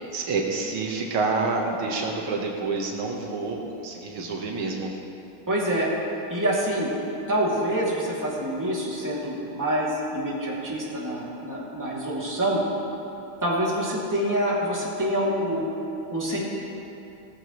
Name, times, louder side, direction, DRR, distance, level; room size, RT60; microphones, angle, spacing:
voice 1, 0.1-5.0, right 3 dB, 80° right, 0 dB, 2.1 m, -28 dB
voice 2, 5.5-5.9 6.3-6.9 7.3-12.6 13.4-15.7 16.1-16.4, right 1 dB, 10° right, -6 dB, 2.3 m, -26 dB
17.0 x 14.0 x 3.1 m, 2.9 s
omnidirectional pair, 2.3 m